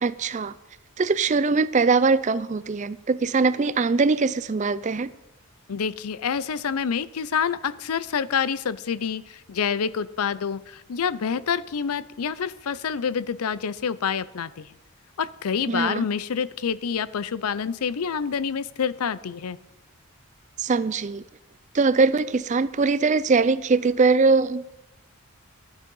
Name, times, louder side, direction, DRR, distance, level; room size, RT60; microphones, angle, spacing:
voice 1, 0.0-0.5 1.0-5.1 15.7-16.1 20.6-21.2 21.7-24.7, right 4 dB, 35° right, 0.4 m, -22 dB
voice 2, 5.7-14.7 15.2-19.6, left 6 dB, 85° left, 0.5 m, -27 dB
12.0 x 9.8 x 5.4 m
head